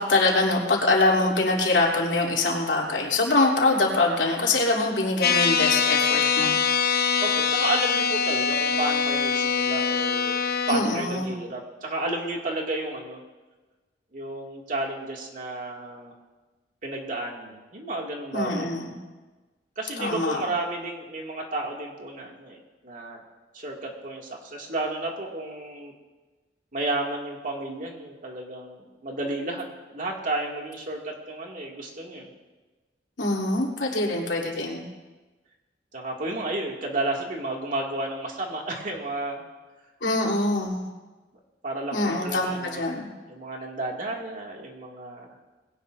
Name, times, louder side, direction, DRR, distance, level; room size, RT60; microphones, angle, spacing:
voice 1, 0.1-6.6 10.7-11.3 18.3-19.0 20.0-20.4 33.2-34.9 40.0-40.9 41.9-43.1, left 2 dB, 85° left, -2 dB, 3.1 m, -24 dB
sound 1, 5.2-10.7, left 6 dB, 60° left, 0.7 m, -23 dB
voice 2, 7.2-10.4 10.7-13.2 14.1-16.1 16.8-18.7 19.8-23.2 23.5-25.9 26.7-29.7 29.9-32.3 35.9-39.4 41.6-42.9 43.3-45.3, right 2 dB, 50° right, 0 dB, 2.3 m, -32 dB
21.0 x 17.0 x 2.6 m, 1.2 s
head